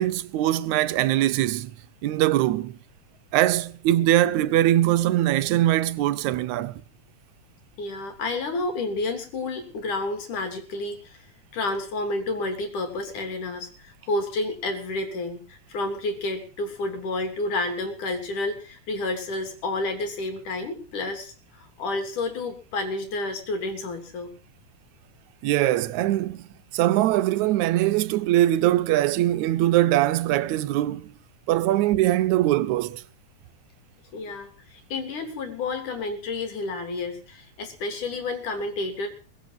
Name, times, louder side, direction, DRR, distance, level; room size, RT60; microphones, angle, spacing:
voice 1, 0.0-1.7 2.0-2.8 3.3-6.8 25.4-26.5 26.7-31.1 31.5-33.0, right 14 dB, 75° right, 2.2 m, -22 dB
voice 2, 7.8-11.3 11.5-24.3 34.1-39.1, left 2 dB, 85° left, 4.9 m, -30 dB
22.0 x 7.9 x 7.5 m
omnidirectional pair, 3.5 m